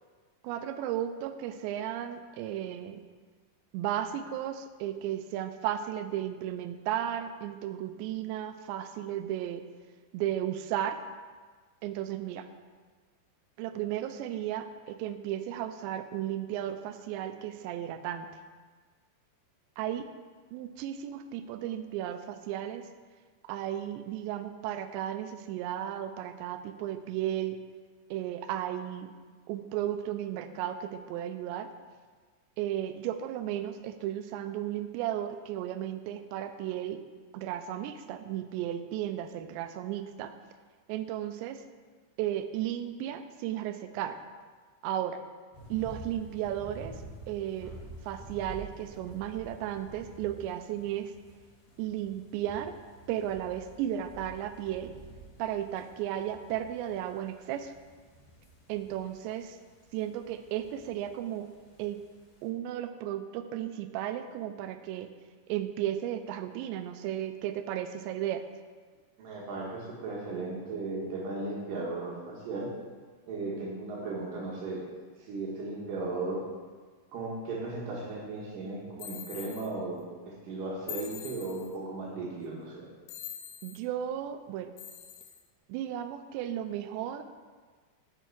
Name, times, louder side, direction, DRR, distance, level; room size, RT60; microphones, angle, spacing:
voice 1, 0.4-3.0 3.7-9.6 10.1-11.0 11.8-12.5 13.6-18.3 19.8-20.1 20.5-22.9 23.4-27.6 28.1-29.1 29.5-31.7 32.6-37.0 37.3-40.3 40.9-41.6 42.2-44.2 44.8-45.2 45.7-46.9 47.3-47.7 48.1-51.1 51.8-52.8 53.1-54.9 55.4-57.7 58.7-59.6 59.9-61.5 61.8-62.0 62.4-65.1 65.5-68.4 83.6-84.7 85.7-87.2, right 11 dB, 85° right, 9 dB, 2.7 m, -34 dB
sound 1, 45.5-62.4, right 1 dB, 55° left, 3.0 m, -50 dB
voice 2, 69.2-72.7 73.3-74.8 75.2-76.4 77.1-80.0 80.3-82.9, right 3 dB, 65° right, -3 dB, 2.3 m, -36 dB
sound 2, 79.0-79.7 80.9-81.8 83.1-83.8 84.8-85.4, left 10 dB, 80° left, 2.5 m, -43 dB
9.1 x 5.5 x 4.5 m, 1.5 s
omnidirectional pair, 5.1 m